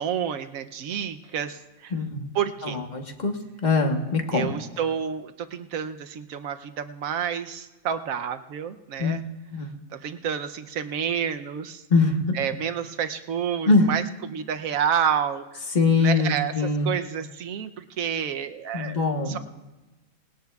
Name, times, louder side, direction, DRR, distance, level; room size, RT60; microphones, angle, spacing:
voice 1, 0.0-1.9 2.3-2.8 4.3-9.2 9.9-11.8 12.3-14.0 14.3-15.7 16.0-19.4, right 8 dB, 75° right, 9 dB, 1.1 m, -29 dB
voice 2, 1.9-2.3 2.6-4.5 9.0-9.2 9.5-9.7 11.9-12.4 13.7-13.9 15.7-16.9 18.7-19.4, left 3 dB, 35° left, 4 dB, 1.2 m, -23 dB
20.0 x 18.0 x 2.4 m, 1.1 s
omnidirectional pair, 1.5 m